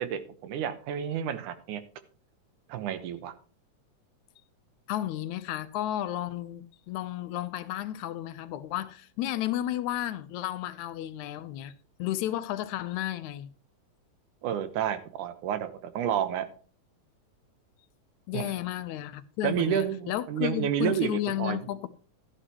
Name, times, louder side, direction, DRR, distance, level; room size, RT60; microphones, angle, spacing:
voice 1, 0.0-1.8 2.7-3.3 14.4-16.4 18.3-18.5 19.4-21.6, right 9 dB, 80° right, 2.6 m, -30 dB
voice 2, 4.9-11.7 12.0-13.5 18.3-21.9, left 13 dB, 80° left, 2.0 m, -33 dB
13.5 x 9.9 x 3.0 m
omnidirectional pair, 3.5 m